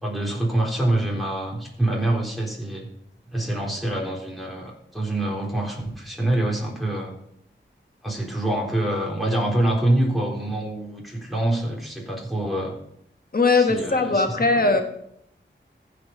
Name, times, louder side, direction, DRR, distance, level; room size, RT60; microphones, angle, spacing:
voice 1, 0.0-2.9 3.3-7.1 8.0-12.7 13.5-14.6, right 1 dB, ahead, -3 dB, 3.7 m, -25 dB
voice 2, 13.3-14.8, left 3 dB, 50° left, 5 dB, 1.5 m, -19 dB
15.5 x 5.2 x 5.2 m, 0.74 s
wide cardioid pair, 60°, 20 cm